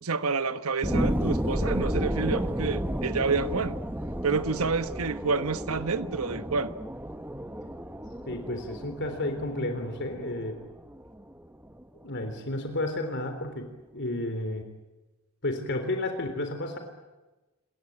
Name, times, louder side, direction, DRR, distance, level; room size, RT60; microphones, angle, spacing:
voice 1, 0.0-3.8 4.2-6.7, right 4 dB, 75° right, 1.2 m, -28 dB
sound 1, 0.8-11.8 12.3-12.4, equal, 10° right, 1.2 m, -32 dB
voice 2, 8.3-10.6 12.0-13.7 13.9-14.6 15.4-16.8, left 1 dB, 55° left, 3.6 m, -31 dB
28.5 x 23.0 x 8.8 m
head